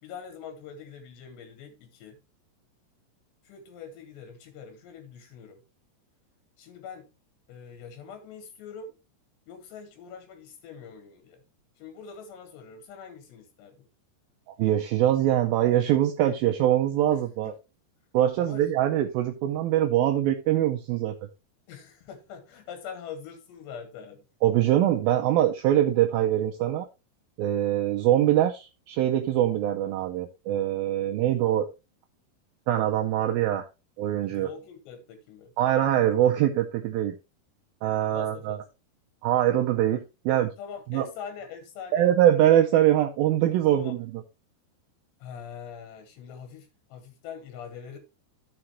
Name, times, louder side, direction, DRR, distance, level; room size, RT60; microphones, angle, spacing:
voice 1, 0.0-2.2 3.4-5.6 6.6-7.1 7.5-8.9 9.5-11.4 11.8-13.9 17.4-17.6 18.4-18.7 21.7-24.3 34.2-35.5 38.1-38.7 40.6-42.1 43.7-44.0 45.2-48.0, left 7 dB, 85° left, 3.4 m, -43 dB
voice 2, 14.6-17.5 18.1-21.2 24.4-26.9 27.4-31.7 32.7-33.7 34.0-34.5 35.6-37.2 37.8-38.6 39.2-40.5 40.9-41.1 41.9-44.0, right 12 dB, 80° right, 2.2 m, -23 dB
14.5 x 4.9 x 3.1 m
omnidirectional pair, 4.9 m